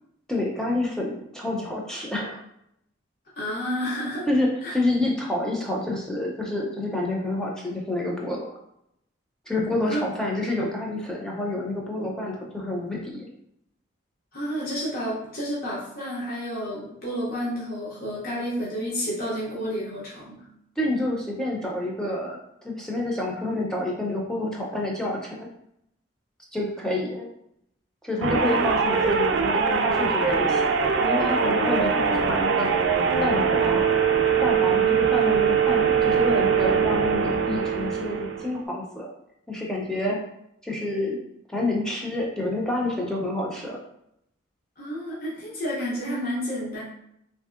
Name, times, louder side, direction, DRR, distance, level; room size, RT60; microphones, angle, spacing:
voice 1, 0.3-2.4 4.3-8.6 9.5-13.3 20.8-25.5 26.5-27.3 28.0-32.7 33.2-33.9 34.4-39.1 39.5-40.2 40.6-41.2 41.5-43.8, left 1 dB, 5° left, -2 dB, 0.4 m, -28 dB
voice 2, 3.4-4.3 4.6-4.8 9.9-10.0 14.3-20.5 28.5-28.6 44.8-46.8, equal, 50° left, -6 dB, 0.7 m, -30 dB
sound 1, 28.2-38.6, right 6 dB, 65° right, 0.3 m, -22 dB
3.0 x 2.6 x 2.4 m, 0.77 s
head